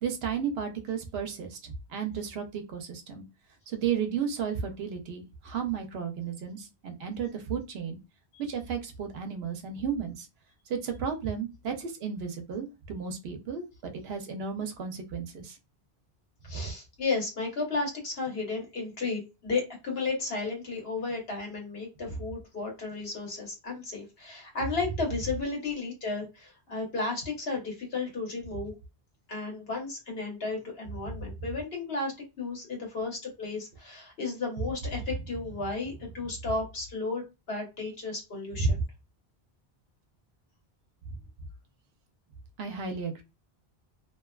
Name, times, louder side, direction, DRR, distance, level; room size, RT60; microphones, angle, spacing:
voice 1, 0.0-3.2 3.7-8.0 8.4-10.3 10.7-15.6 38.6-38.7 42.6-43.2, right 6 dB, 85° right, 5 dB, 0.8 m, -33 dB
voice 2, 16.4-28.7 29.3-38.8, left 3 dB, 75° left, 0 dB, 1.3 m, -33 dB
2.7 x 2.2 x 2.2 m, 0.26 s
omnidirectional pair, 1.0 m